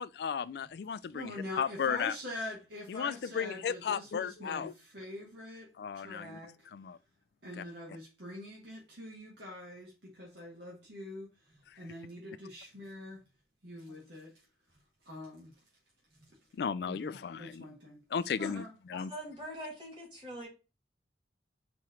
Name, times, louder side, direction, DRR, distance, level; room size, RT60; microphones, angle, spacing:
voice 1, 0.0-2.1 2.9-4.7 5.8-6.4 6.7-7.0 7.6-7.7 16.5-17.7 18.1-18.6 18.9-19.1, left 7 dB, 60° left, 0.3 m, -35 dB
voice 2, 1.1-6.5 7.4-13.2 13.6-14.3 15.0-15.5 16.2-16.3 16.8-18.0 18.4-18.7, left 1 dB, 70° right, 1.5 m, -44 dB
voice 3, 19.1-20.5, equal, 25° right, 2.2 m, -43 dB
4.3 x 3.0 x 3.7 m
head